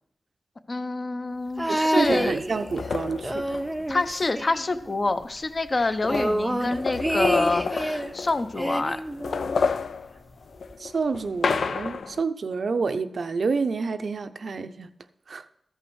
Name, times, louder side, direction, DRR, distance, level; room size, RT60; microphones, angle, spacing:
voice 1, 0.7-2.3 3.9-9.0, left 3 dB, 40° left, 0.7 m, -27 dB
sound 1, 1.6-2.9 3.2-5.1 5.4-5.5 5.8-8.1 8.6-9.8 10.7-10.8, right 1 dB, 10° right, 0.6 m, -28 dB
voice 2, 1.7-3.4 10.8-14.9 15.3-15.5, right 4 dB, 65° right, 0.6 m, -28 dB
sound 2, 2.1-4.3 5.2-5.3 5.6-8.7 9.1-12.2, left 5 dB, 85° left, 0.4 m, -30 dB
14.0 x 5.5 x 6.2 m
wide cardioid pair, 90°, 0 cm